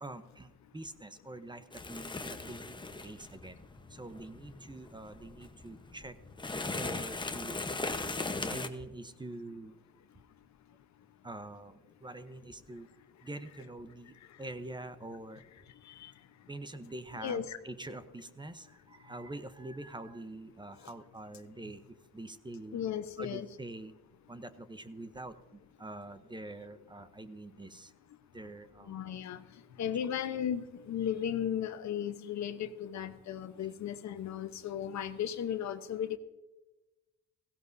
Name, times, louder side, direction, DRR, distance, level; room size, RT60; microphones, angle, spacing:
voice 1, 0.0-2.8 3.0-3.6 3.9-6.2 6.7-7.6 8.5-9.7 11.2-12.9 13.2-15.4 16.5-22.8 23.2-23.9 24.3-27.9 28.3-29.0, right 2 dB, 15° right, 11 dB, 0.8 m, -45 dB
sound 1, 1.7-8.7, left 3 dB, 15° left, 1.0 m, -39 dB
voice 2, 17.1-17.6 22.7-23.5 28.9-29.4 29.8-36.2, left 9 dB, 65° left, 10 dB, 1.0 m, -35 dB
16.5 x 16.0 x 2.7 m, 1.1 s
cardioid pair, 90°, 30 cm